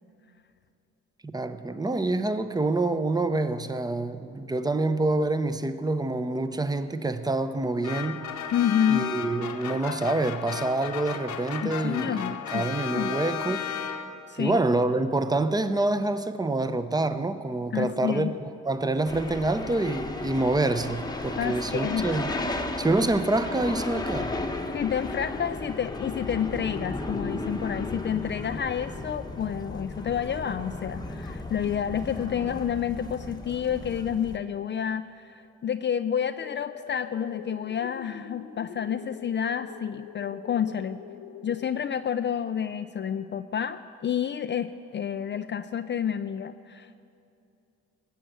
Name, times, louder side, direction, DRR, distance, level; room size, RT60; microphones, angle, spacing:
voice 1, 1.2-8.3 8.9-13.6 14.4-22.3 22.8-24.3, right 2 dB, 15° right, 11 dB, 0.8 m, -27 dB
sound 1, 7.8-14.4, left 7 dB, 70° left, 1.1 m, -34 dB
voice 2, 8.5-9.1 11.6-12.6 12.9-13.1 14.3-14.6 17.7-18.3 21.4-22.1 24.7-41.0 41.4-47.0, left 8 dB, 40° left, 9 dB, 0.4 m, -29 dB
sound 2, 19.1-34.4, left 2 dB, 15° left, 1.0 m, -34 dB
sound 3, 36.4-41.7, left 10 dB, 90° left, 0.7 m, -44 dB
19.0 x 7.7 x 8.1 m, 2.6 s
cardioid pair, 90°, 30 cm